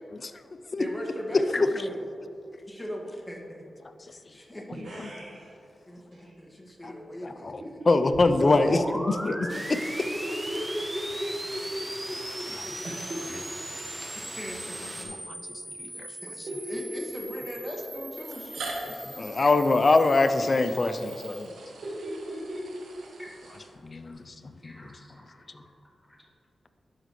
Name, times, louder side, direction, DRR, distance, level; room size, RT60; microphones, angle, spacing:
voice 1, 0.8-2.0 2.7-3.6 4.0-4.6 5.9-7.5 8.4-8.6 10.1-10.2 10.5-12.7 14.1-15.2 16.1-16.4 16.7-19.7 23.2-23.3 24.2-25.7 26.1-26.2, equal, 10° left, -2 dB, 1.9 m, -39 dB
voice 2, 1.3-1.7 3.8-4.4 5.0-5.1 6.8-6.9 7.2-9.5 12.6-12.7 15.0-16.1 16.4-16.5 18.6-21.5 23.8-25.0 25.5-25.6, left 3 dB, 50° left, 10 dB, 0.5 m, -25 dB
voice 3, 4.8-5.5 6.1-6.3 9.9-10.4 12.8-13.2 16.5-17.2 21.8-22.6, right 1 dB, 65° right, -6 dB, 1.4 m, -38 dB
sound 1, 8.1-21.4, right 1 dB, 15° right, 1.1 m, -39 dB
sound 2, 9.5-15.1, right 1 dB, 35° right, 1.4 m, -42 dB
sound 3, 15.9-16.0 17.1-17.2 18.2-24.2, right 2 dB, 85° right, 1.0 m, -43 dB
12.0 x 5.0 x 3.2 m, 2.7 s
cardioid pair, 45°, 0 cm